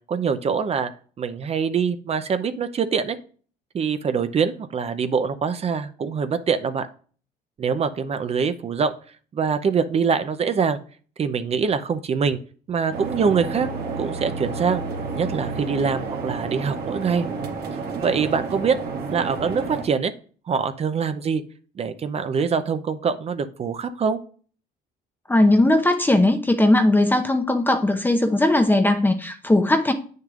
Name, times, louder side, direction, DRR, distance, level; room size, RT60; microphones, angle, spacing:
voice 1, 0.1-0.9 1.2-3.2 3.7-6.9 7.6-8.9 9.3-10.8 11.2-12.4 12.7-13.7 14.0-14.8 15.1-17.3 18.0-18.8 19.1-20.1 20.5-21.4 21.8-24.2, right 6 dB, 35° right, 10 dB, 0.7 m, -24 dB
sound 1, 12.9-19.8, right 4 dB, 65° right, 1.9 m, -30 dB
voice 2, 25.3-29.9, left 1 dB, 10° left, 6 dB, 0.8 m, -18 dB
8.5 x 6.6 x 2.5 m, 0.41 s
cardioid pair, 110°, 17 cm